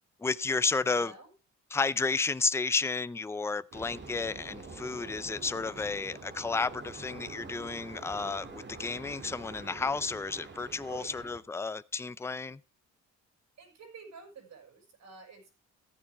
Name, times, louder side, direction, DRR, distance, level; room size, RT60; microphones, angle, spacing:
voice 1, 0.2-1.1 1.7-12.6, left 4 dB, 10° left, 0.5 m, -32 dB
voice 2, 0.9-1.3 10.8-11.3 13.6-15.5, right 5 dB, 65° right, 6.2 m, -50 dB
sound 1, 3.7-11.4, right 3 dB, 35° right, 1.9 m, -46 dB
14.5 x 9.8 x 3.5 m
cardioid pair, 90°, 30 cm